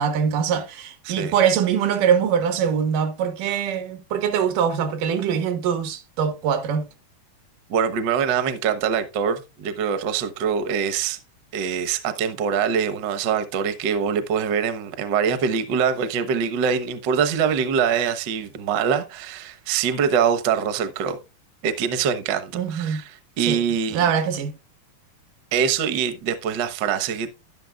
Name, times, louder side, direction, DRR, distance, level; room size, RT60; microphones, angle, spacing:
voice 1, 0.0-6.9 22.5-23.1 23.4-23.6 23.9-24.5, right 7 dB, 90° right, 2.9 m, -23 dB
voice 2, 7.7-11.2 11.5-21.2 21.6-24.0 25.5-27.3, right 7 dB, 70° right, 1.0 m, -24 dB
12.0 x 11.0 x 2.4 m
omnidirectional pair, 3.6 m